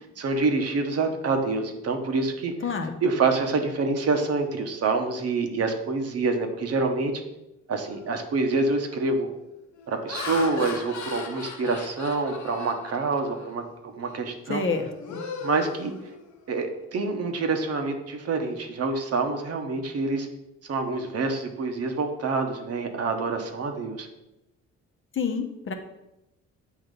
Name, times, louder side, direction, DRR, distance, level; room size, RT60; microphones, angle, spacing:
voice 1, 0.2-2.5 3.0-7.1 7.7-9.3 9.9-14.6 15.4-15.9 16.5-20.3 20.6-24.1, right 3 dB, 55° right, 5 dB, 1.0 m, -26 dB
voice 2, 2.6-3.0 14.5-15.2 25.1-25.7, left 5 dB, 40° left, 4 dB, 0.9 m, -28 dB
Laughter, 8.0-8.3 8.8-9.1 9.7-13.6 14.0-14.2 14.6-16.6, left 5 dB, 65° left, 0.9 m, -38 dB
8.2 x 2.9 x 5.3 m, 0.92 s
cardioid pair, 90°, 30 cm